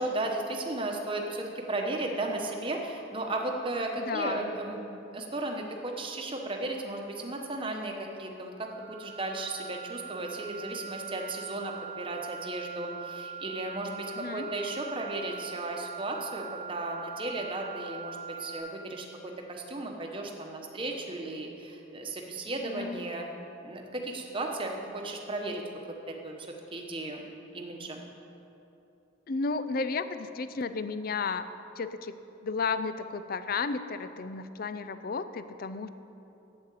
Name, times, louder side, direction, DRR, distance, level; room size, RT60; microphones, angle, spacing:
voice 1, 0.0-23.3 23.6-25.6 26.1-26.3 26.7-27.2 27.5-28.0, right 2 dB, 25° right, 2 dB, 1.0 m, -35 dB
voice 2, 4.0-4.5 14.2-14.5 22.7-23.1 29.3-31.5 31.8-32.1 32.4-35.9, left 4 dB, 45° left, 12 dB, 0.4 m, -33 dB
sound 1, 8.6-18.6, right 6 dB, 65° left, 2.5 m, -42 dB
8.5 x 7.9 x 8.3 m, 2.9 s
head